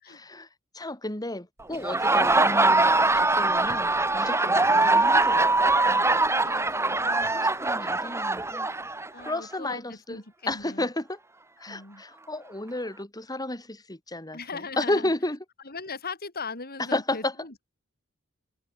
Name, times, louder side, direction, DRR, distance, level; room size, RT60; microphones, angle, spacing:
voice 1, 0.1-0.5 0.7-5.7 7.4-8.7 9.2-10.2 10.5-11.2 11.6-15.4 16.9-17.3, left 2 dB, 20° left, 4.9 m, -32 dB
Laughter, 1.7-9.4, right 2 dB, 15° right, 1.6 m, -22 dB
voice 2, 4.4-4.9 5.8-7.4 7.7-7.8 9.1-10.9 11.7-12.0 14.3-15.1 15.6-17.5, left 4 dB, 45° left, 5.6 m, -40 dB
head